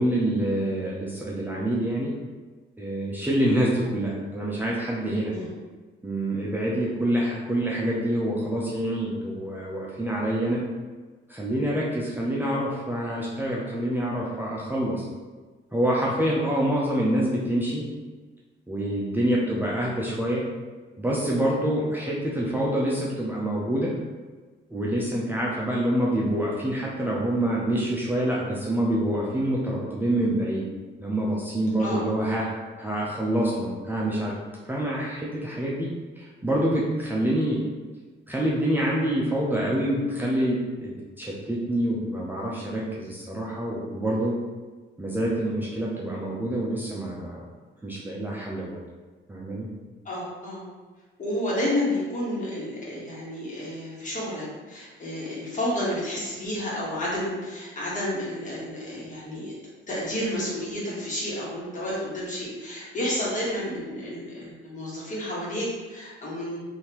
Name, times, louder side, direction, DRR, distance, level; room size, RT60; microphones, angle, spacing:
voice 1, 0.0-2.1 2.8-5.3 6.0-10.6 11.3-15.1 15.7-17.9 18.7-20.5 21.0-24.0 24.7-30.7 31.0-32.4 32.8-34.4 34.7-37.7 38.3-44.4 45.0-47.5 47.8-48.8 49.3-49.7, right 1 dB, 10° right, -5 dB, 0.6 m, -26 dB
voice 2, 50.0-50.6 51.2-59.5 59.9-66.6, left 1 dB, 40° left, -6 dB, 1.5 m, -30 dB
3.5 x 2.8 x 3.0 m, 1.3 s
cardioid pair, 90°, 20 cm